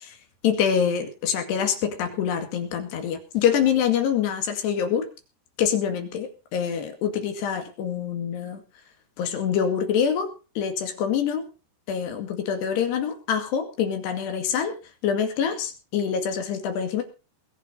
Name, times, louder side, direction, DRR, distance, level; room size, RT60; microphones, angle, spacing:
voice 1, 0.4-5.1 5.6-8.6 9.2-10.3 10.6-11.4 11.9-14.7 15.0-17.0, left 8 dB, 75° left, 6 dB, 4.2 m, -25 dB
20.5 x 8.4 x 5.4 m, 0.34 s
omnidirectional pair, 5.0 m